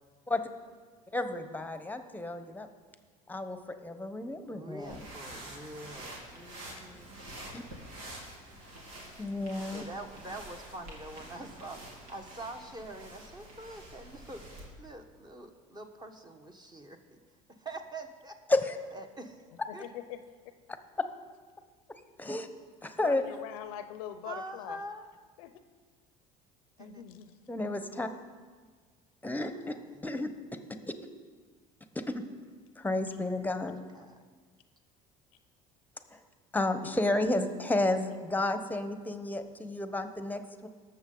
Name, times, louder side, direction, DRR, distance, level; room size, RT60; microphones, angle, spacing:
voice 1, 1.1-2.7 3.3-5.0 7.5-7.6 9.2-9.8 18.5-18.8 22.2-22.5 22.8-23.2 27.5-28.1 29.2-29.8 30.0-30.3 31.9-32.2 32.8-33.8 36.1-36.2 36.5-40.7, left 2 dB, 10° left, 9 dB, 1.0 m, -31 dB
voice 2, 4.5-7.2 9.7-14.5 14.8-17.2 17.5-18.4 18.9-19.4 19.7-19.9 24.2-25.1 26.8-27.0 29.5-30.1 33.2-34.2, right 2 dB, 20° right, 5 dB, 1.4 m, -45 dB
sound 1, 4.8-14.7, right 1 dB, 80° right, 2.2 m, -47 dB
voice 3, 19.8-20.2 22.9-24.8 25.4-25.5 26.8-27.3, left 10 dB, 75° left, 10 dB, 0.7 m, -42 dB
19.0 x 6.9 x 3.9 m, 1.5 s
hypercardioid pair, 75°, 18 cm